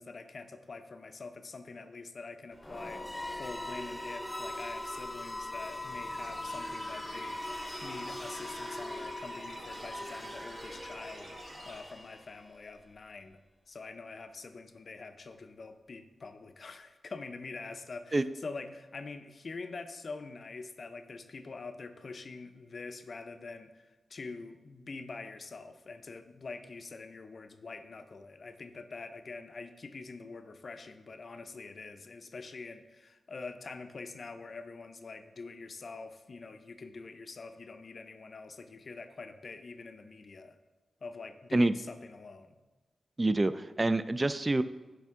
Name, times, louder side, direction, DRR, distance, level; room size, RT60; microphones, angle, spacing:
voice 1, 0.0-11.4 11.6-13.4 13.7-40.6 41.0-42.6, left 4 dB, 55° left, 8 dB, 0.5 m, -45 dB
sound 1, 2.5-12.5, left 1 dB, 5° left, 0.6 m, -41 dB
sound 2, 6.2-11.8, right 1 dB, 80° right, 1.4 m, -50 dB
voice 2, 43.2-44.6, right 2 dB, 30° right, 13 dB, 0.3 m, -26 dB
10.0 x 3.5 x 3.6 m, 1.2 s
cardioid pair, 70°, 0 cm